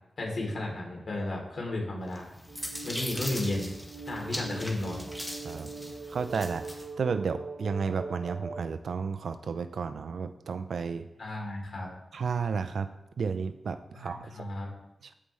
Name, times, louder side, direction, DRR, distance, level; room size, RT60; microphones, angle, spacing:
voice 1, 0.2-2.3 2.8-3.7 4.1-5.1 11.2-11.9 13.9-14.7, left 2 dB, 65° left, -1 dB, 3.2 m, -33 dB
sound 1, 2.1-6.9, equal, 5° left, 1.6 m, -40 dB
sound 2, 2.5-8.6, right 3 dB, 50° right, 1.2 m, -42 dB
voice 2, 5.4-6.7 7.0-11.1 12.1-12.9 13.2-14.4, right 5 dB, 75° right, 11 dB, 0.5 m, -32 dB
15.0 x 5.4 x 3.2 m, 0.84 s
cardioid pair, 50°, 0 cm